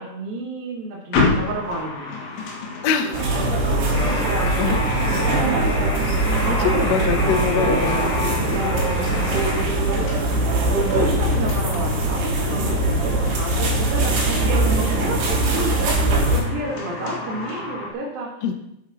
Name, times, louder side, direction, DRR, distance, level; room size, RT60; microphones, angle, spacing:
voice 1, 0.0-2.2 3.9-5.0 6.4-7.7 8.0-18.4, right 2 dB, 65° right, -6 dB, 3.5 m, -31 dB
sound 1, 1.1-17.9, left 3 dB, 65° left, 3.1 m, -32 dB
voice 2, 2.8-3.5 4.1-4.2 4.6-4.8 6.4-8.7 18.4-18.5, left 7 dB, 85° left, 5 dB, 1.5 m, -24 dB
sound 2, 3.1-16.4, right 2 dB, 85° right, 4.7 m, -21 dB
Alarm, 3.9-9.7, left 2 dB, 40° left, 3.8 m, -29 dB
9.4 x 6.6 x 6.2 m, 0.84 s
omnidirectional pair, 4.6 m